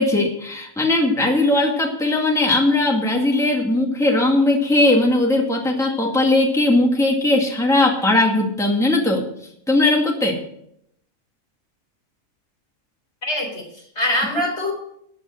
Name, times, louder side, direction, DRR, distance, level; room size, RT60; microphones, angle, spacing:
voice 1, 0.0-9.2 9.7-10.4, left 2 dB, ahead, 0 dB, 2.0 m, -18 dB
voice 2, 13.2-14.7, left 1 dB, 60° left, 1 dB, 4.1 m, -24 dB
13.5 x 8.8 x 6.5 m, 0.73 s
omnidirectional pair, 1.3 m